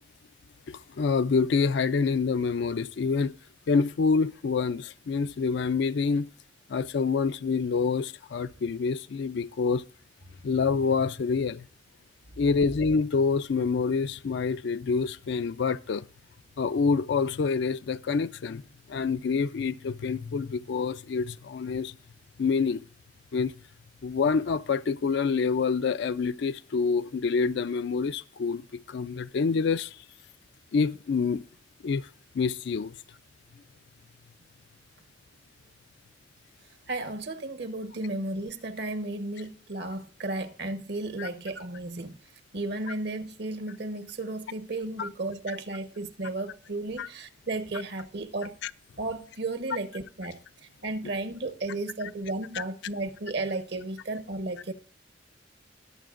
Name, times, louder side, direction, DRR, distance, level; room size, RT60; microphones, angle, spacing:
voice 1, 0.7-3.3 3.7-6.3 6.7-9.8 10.4-11.7 12.4-16.1 16.6-18.6 18.9-21.9 22.4-22.8 23.3-23.5 24.0-30.0 30.7-31.4 31.8-32.1 32.3-32.9 41.2-41.3 45.0-45.1 47.0-47.1 48.6-48.7 52.5-52.6, left 5 dB, 65° left, 0.4 m, -27 dB
voice 2, 36.9-42.2 42.5-48.6 49.0-50.4 50.8-54.7, right 2 dB, 60° right, 1.1 m, -34 dB
21.0 x 7.0 x 2.5 m
head